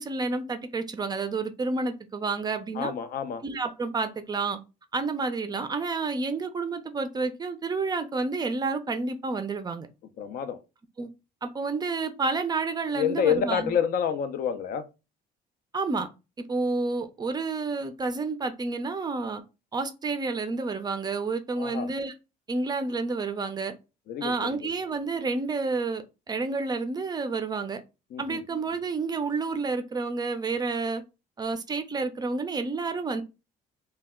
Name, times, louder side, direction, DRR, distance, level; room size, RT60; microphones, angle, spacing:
voice 1, 0.0-2.9 3.4-4.6 4.9-9.9 11.0-11.1 11.4-13.7 15.7-16.1 16.5-19.4 19.7-22.1 22.5-23.7 24.2-27.8 28.2-31.0 31.4-33.2, right 3 dB, 25° right, 0.4 m, -30 dB
voice 2, 2.8-3.4 10.2-10.6 12.9-14.9 21.6-21.9 24.1-24.6 28.1-28.4, left 8 dB, 60° left, 0.4 m, -28 dB
2.2 x 2.0 x 3.5 m
cardioid pair, 110°, 17 cm